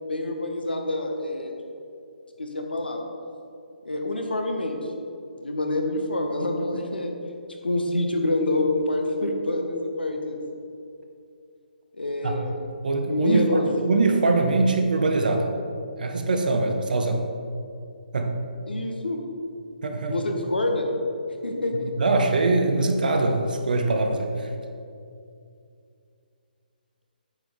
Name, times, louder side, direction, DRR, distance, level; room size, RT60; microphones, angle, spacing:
voice 1, 0.1-1.5 2.4-3.0 3.8-4.8 5.4-7.1 7.6-10.4 11.9-12.6 13.1-13.7 18.7-19.2 20.1-20.9 21.4-21.9, left 2 dB, 80° left, 3 dB, 1.2 m, -26 dB
voice 2, 12.8-15.5 16.0-17.2 18.1-18.4 19.8-20.3 22.0-24.5, right 3 dB, 60° right, 4 dB, 0.9 m, -23 dB
8.7 x 6.1 x 3.7 m, 2.5 s
figure-of-eight pair, 140°, 5 cm